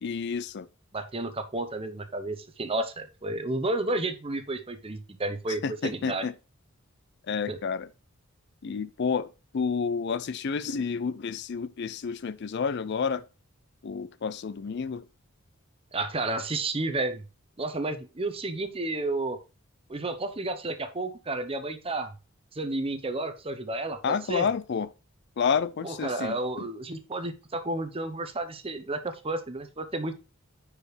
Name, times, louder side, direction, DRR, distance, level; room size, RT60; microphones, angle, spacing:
voice 1, 0.0-0.7 5.6-6.3 7.3-7.9 8.6-13.2 13.8-15.0 24.0-24.9 25.4-26.4, left 6 dB, 55° left, 0.4 m, -30 dB
voice 2, 0.9-6.3 7.5-7.6 15.9-17.2 17.6-19.4 19.9-22.1 22.5-24.5 25.8-30.1, right 2 dB, 30° right, 0.8 m, -31 dB
9.6 x 5.0 x 3.3 m
head